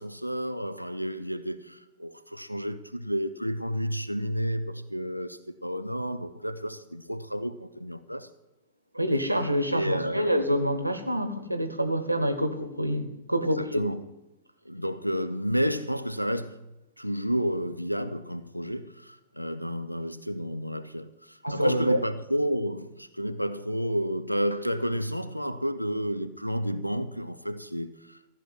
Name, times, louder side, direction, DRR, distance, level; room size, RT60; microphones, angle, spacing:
voice 1, 0.0-8.3 9.7-10.3 13.4-14.0 14.7-16.6 17.0-28.2, equal, 90° left, 0.5 m, -31 dB
voice 2, 8.9-13.8 21.4-22.0, equal, 85° right, 0.8 m, -26 dB
14.0 x 5.9 x 9.1 m
figure-of-eight pair, 90°, 0 cm